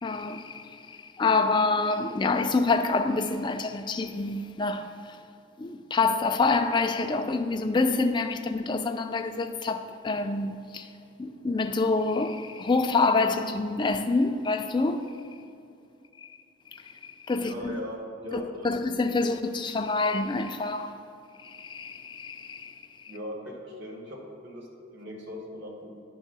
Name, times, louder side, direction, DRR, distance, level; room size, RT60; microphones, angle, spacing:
voice 1, 0.0-4.9 5.6-10.9 11.2-15.1 16.2-16.3 16.7-17.8 18.6-21.0 21.4-22.7, left 3 dB, 25° left, 0.3 m, -27 dB
voice 2, 17.4-18.7 23.1-25.9, equal, 60° right, 1.6 m, -39 dB
9.9 x 3.6 x 6.0 m
head